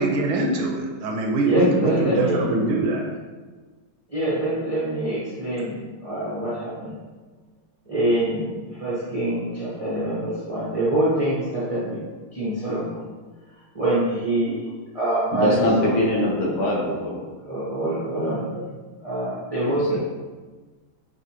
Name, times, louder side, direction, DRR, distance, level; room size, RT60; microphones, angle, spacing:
voice 1, 0.0-3.0, right 2 dB, 80° right, 0 dB, 1.4 m, -23 dB
voice 2, 1.4-2.5 4.1-7.0 7.9-12.0 12.3-13.0 13.7-14.6 14.9-16.0 17.4-18.7 19.0-20.0, right 1 dB, 45° right, -10 dB, 0.4 m, -25 dB
voice 3, 15.3-17.2 19.6-20.0, left 1 dB, 65° left, -3 dB, 1.3 m, -23 dB
6.2 x 2.4 x 2.8 m, 1.3 s
omnidirectional pair, 2.3 m